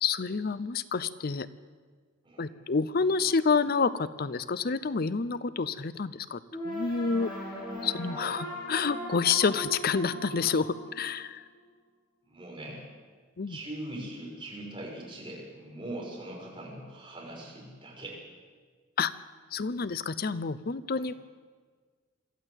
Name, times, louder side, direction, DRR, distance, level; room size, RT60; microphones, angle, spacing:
voice 1, 0.0-1.5 2.4-7.3 7.8-11.4 13.4-13.6 19.0-19.1 19.5-21.1, left 5 dB, 50° left, 15 dB, 0.6 m, -28 dB
sound 1, 6.5-11.5, equal, 25° left, 7.2 m, -38 dB
voice 2, 12.2-12.9 13.5-18.2 21.0-21.1, right 1 dB, 25° right, -2 dB, 6.2 m, -41 dB
23.5 x 14.0 x 8.1 m, 1.5 s
head